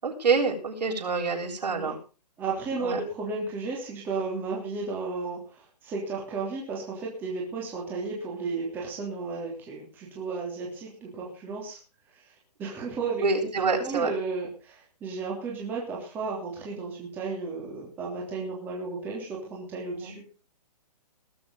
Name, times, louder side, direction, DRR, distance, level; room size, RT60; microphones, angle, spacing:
voice 1, 0.0-2.0 2.8-3.0 13.2-14.1 20.0-20.2, right 4 dB, 85° right, 0 dB, 7.5 m, -26 dB
voice 2, 2.4-11.8 12.1-12.3 12.6-13.5 13.8-20.3, right 4 dB, 10° right, -3 dB, 3.2 m, -34 dB
20.5 x 7.9 x 5.4 m, 0.35 s
hypercardioid pair, 180°, 21 cm